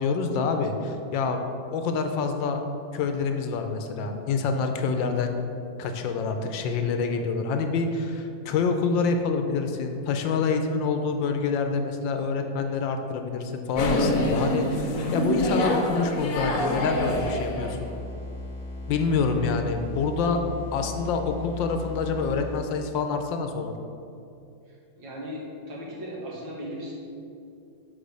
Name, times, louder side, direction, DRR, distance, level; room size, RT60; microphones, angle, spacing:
voice 1, 0.0-1.4 1.7-2.6 2.9-5.3 5.8-17.8 18.9-20.4 20.7-23.7, left 4 dB, 75° left, 5 dB, 1.3 m, -27 dB
sound 1, 13.7-17.9, left 1 dB, 55° left, 1.1 m, -26 dB
sound 2, 16.9-23.0, left 1 dB, 25° left, 0.4 m, -38 dB
voice 2, 24.7-26.9, equal, 70° right, -4 dB, 2.4 m, -37 dB
6.1 x 5.5 x 6.4 m, 2.6 s
omnidirectional pair, 2.1 m